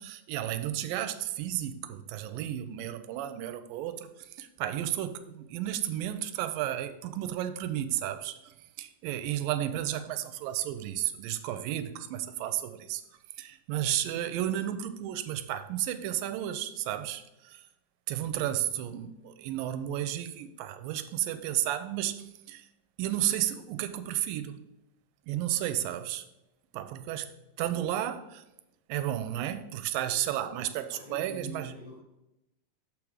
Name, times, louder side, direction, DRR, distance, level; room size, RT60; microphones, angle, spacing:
voice 1, 0.0-13.0 13.4-17.7 18.1-22.7 23.0-24.6 25.3-26.3 26.7-28.4 28.9-31.7, right 12 dB, 90° right, 2.3 m, -33 dB
voice 2, 30.9-32.0, left 1 dB, 70° left, 1.1 m, -46 dB
7.3 x 5.0 x 4.7 m
omnidirectional pair, 3.9 m